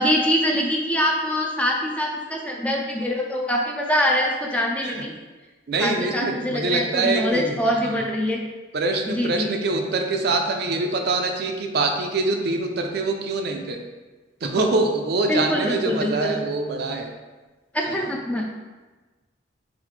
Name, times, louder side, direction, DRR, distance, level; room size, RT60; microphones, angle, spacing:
voice 1, 0.0-5.1 5.8-8.4 9.1-9.5 15.3-16.4 17.7-18.5, equal, 5° left, 0 dB, 0.4 m, -24 dB
voice 2, 5.7-8.1 8.7-13.8 14.4-17.1 17.8-18.0, right 3 dB, 55° right, 3 dB, 0.5 m, -24 dB
4.0 x 4.0 x 3.2 m, 1.2 s
head